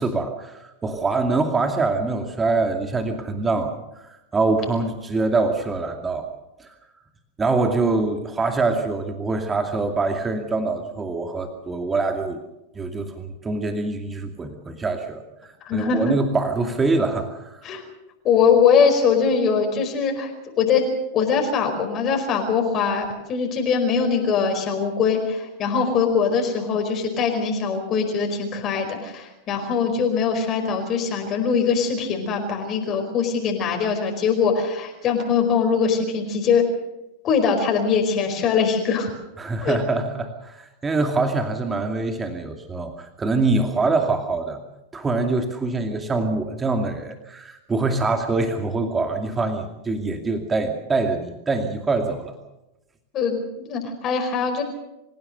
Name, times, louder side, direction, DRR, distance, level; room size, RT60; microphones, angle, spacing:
voice 1, 0.0-6.3 6.6-6.8 7.4-12.4 12.7-17.6 39.4-44.6 44.9-52.3, right 3 dB, 20° right, 5 dB, 2.4 m, -24 dB
voice 2, 15.6-16.1 17.6-17.8 18.2-20.3 20.6-20.9 21.1-36.6 37.2-39.1 39.6-39.7 53.1-54.6, left 6 dB, 35° left, 3 dB, 4.9 m, -22 dB
27.5 x 16.0 x 6.8 m, 0.93 s
hypercardioid pair, 90°, 0 cm